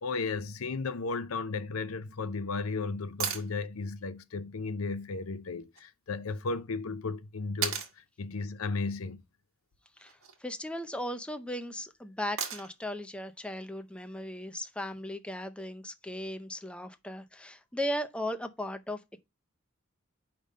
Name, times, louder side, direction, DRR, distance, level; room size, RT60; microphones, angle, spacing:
voice 1, 0.0-9.2, left 4 dB, 90° left, 0.6 m, -34 dB
sound 1, 3.2-3.5 5.7-5.8 7.6-7.9 10.0-10.4 12.4-12.9 15.0-15.1, right 7 dB, 75° right, 1.3 m, -34 dB
voice 2, 10.0-19.2, equal, 5° left, 0.5 m, -37 dB
5.2 x 3.4 x 5.3 m
head